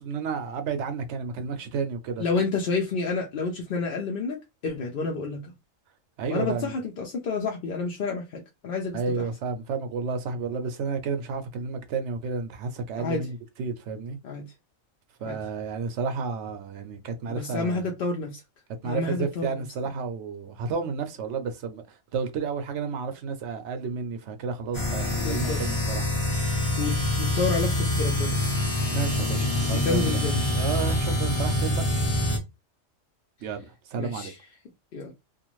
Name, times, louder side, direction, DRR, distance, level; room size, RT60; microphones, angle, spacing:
voice 1, 0.0-2.4 6.2-6.7 8.9-14.2 15.2-17.9 18.8-26.1 28.9-30.2 30.5-31.8 33.4-34.3, right 5 dB, 65° right, 0.9 m, -31 dB
voice 2, 2.2-5.4 6.3-9.2 13.0-13.2 14.2-14.4 15.3-15.4 17.3-18.4 18.8-19.6 25.2-25.6 26.8-28.4 29.4-30.4 34.0-34.3 34.9-35.1, left 4 dB, 55° left, 0.7 m, -29 dB
sound 1, 24.7-32.4, left 1 dB, 25° left, 0.8 m, -25 dB
2.5 x 2.5 x 3.0 m
omnidirectional pair, 1.4 m